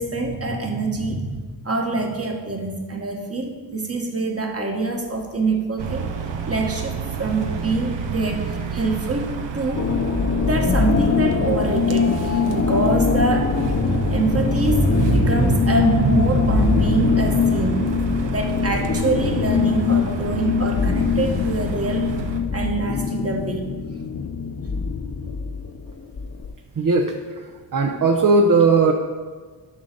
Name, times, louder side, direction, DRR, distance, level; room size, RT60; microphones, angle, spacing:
voice 1, 0.0-6.1 6.5-8.4 8.7-9.3 9.5-9.9 10.4-22.1 22.5-23.6, right 2 dB, 35° right, 2 dB, 1.4 m, -24 dB
sound 1, 5.8-22.4, right 6 dB, 90° right, 0.9 m, -31 dB
sound 2, 9.7-26.5, left 5 dB, 35° left, 0.7 m, -23 dB
voice 2, 26.8-28.9, right 3 dB, 50° right, 2 dB, 0.8 m, -18 dB
10.5 x 4.0 x 6.7 m, 1.5 s
wide cardioid pair, 80°, 43 cm